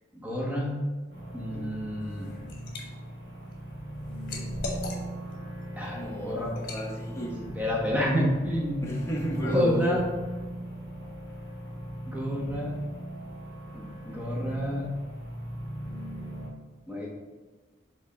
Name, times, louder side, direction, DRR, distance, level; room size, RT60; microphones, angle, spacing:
voice 1, 0.1-0.7 1.3-2.3 5.8-6.5 7.5-8.8 9.4-10.0 12.1-12.7 13.7-14.9 16.9-17.1, left 1 dB, 5° right, -4 dB, 1.1 m, -29 dB
sound 1, 1.1-16.5, right 1 dB, 55° right, 1.9 m, -39 dB
Liquid, 2.0-2.8 3.3-5.4 5.8-6.0 6.5-6.9, left 2 dB, 50° left, 1.1 m, -38 dB
voice 2, 5.9-7.4 8.8-9.9, right 1 dB, 15° left, -3 dB, 0.8 m, -32 dB
5.1 x 3.7 x 5.2 m, 1.3 s
head